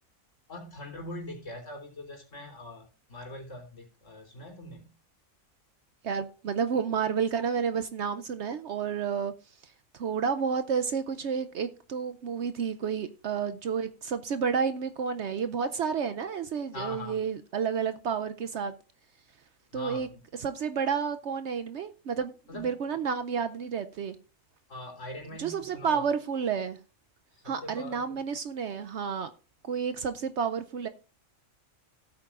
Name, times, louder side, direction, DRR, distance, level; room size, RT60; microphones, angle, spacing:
voice 1, 0.5-4.9 16.7-17.2 19.7-20.2 22.5-23.0 24.7-26.1 27.3-28.2, left 1 dB, 60° left, 3.7 m, -42 dB
voice 2, 6.0-9.3 9.9-18.7 19.7-20.1 20.4-24.2 25.4-26.8 27.4-29.3 29.7-30.9, right 6 dB, 65° right, 0.8 m, -30 dB
16.0 x 8.6 x 2.4 m
omnidirectional pair, 1.5 m